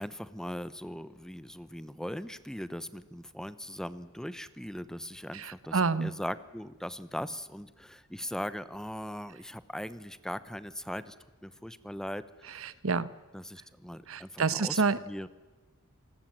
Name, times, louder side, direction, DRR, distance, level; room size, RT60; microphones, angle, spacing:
voice 1, 0.0-11.1 11.4-12.7 13.3-14.8 15.1-15.3, equal, 5° left, 15 dB, 0.8 m, -39 dB
voice 2, 5.3-6.1 12.5-13.1 14.1-15.0, right 4 dB, 70° right, 17 dB, 1.0 m, -28 dB
27.5 x 20.0 x 7.6 m, 1.2 s
head